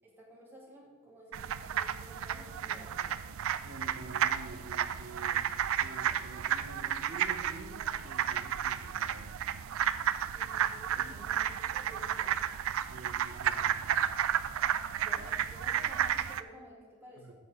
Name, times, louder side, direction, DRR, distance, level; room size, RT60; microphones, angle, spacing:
voice 1, 0.0-3.2 10.2-12.3 15.0-17.3, equal, 10° right, -5 dB, 2.0 m, -52 dB
sound 1, 1.3-16.4, right 10 dB, 65° right, 0.4 m, -32 dB
voice 2, 3.6-9.4 10.9-11.2 12.8-14.0 17.2-17.3, right 2 dB, 80° right, 4 dB, 1.1 m, -48 dB
8.3 x 5.7 x 4.9 m, 1.4 s
head